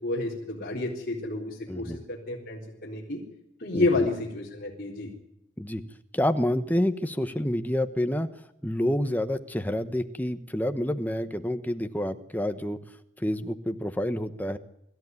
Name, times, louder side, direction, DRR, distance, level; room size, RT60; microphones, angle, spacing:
voice 1, 0.0-3.2 3.6-5.1, left 2 dB, 50° left, -4 dB, 4.0 m, -30 dB
voice 2, 3.7-4.1 5.6-5.8 6.1-8.3 8.6-12.8 13.2-14.6, left 1 dB, 10° left, 8 dB, 1.1 m, -28 dB
24.5 x 13.5 x 9.6 m, 0.86 s
head